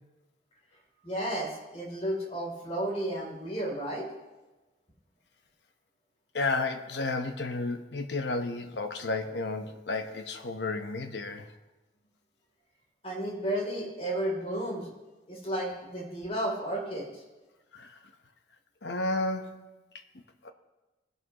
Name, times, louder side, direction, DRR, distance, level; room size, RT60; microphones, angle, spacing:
voice 1, 1.0-4.0 13.0-14.9 15.3-17.2, right 1 dB, 35° left, -1 dB, 3.1 m, -33 dB
voice 2, 6.3-11.5 17.7-18.0 18.8-19.6 20.4-20.5, left 3 dB, 70° left, 7 dB, 0.9 m, -32 dB
19.0 x 11.0 x 3.0 m, 1.1 s
head